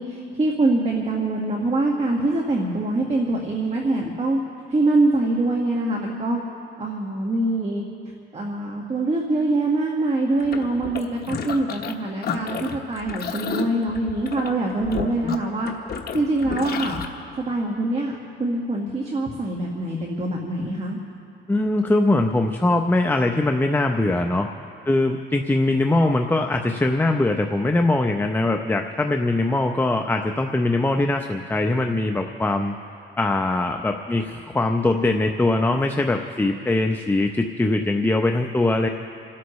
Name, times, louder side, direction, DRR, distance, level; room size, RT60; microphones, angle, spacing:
voice 1, 0.0-4.4 4.7-6.4 6.8-7.8 8.3-15.7 16.1-17.0 17.4-18.1 18.4-21.0, right 2 dB, 30° right, 0 dB, 1.8 m, -24 dB
sound 1, 10.4-11.9 12.2-17.1, left 6 dB, 50° left, 1.2 m, -31 dB
voice 2, 21.5-24.5 24.9-32.8 33.2-38.9, left 2 dB, 10° left, 4 dB, 0.7 m, -21 dB
29.0 x 13.0 x 3.2 m, 2.7 s
cardioid pair, 90°, 20 cm